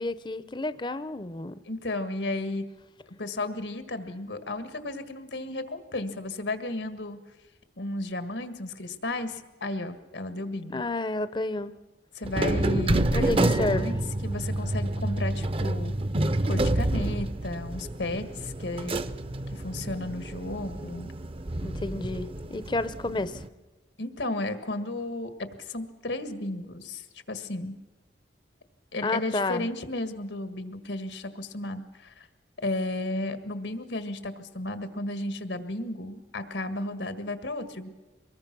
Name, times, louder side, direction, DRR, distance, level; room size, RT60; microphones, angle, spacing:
voice 1, 0.0-1.6 10.7-11.7 13.1-14.0 21.6-23.4 29.0-29.7, left 2 dB, 25° left, 14 dB, 0.6 m, -30 dB
voice 2, 1.7-2.6 3.1-7.2 7.8-10.8 12.2-14.0 14.2-15.9 16.4-19.0 19.5-21.1 24.0-27.7 28.9-32.3 32.6-37.9, left 2 dB, 85° left, 10 dB, 1.7 m, -33 dB
sound 1, 12.2-23.5, right 1 dB, 30° right, 0.6 m, -29 dB
24.5 x 21.0 x 6.1 m, 1.2 s
head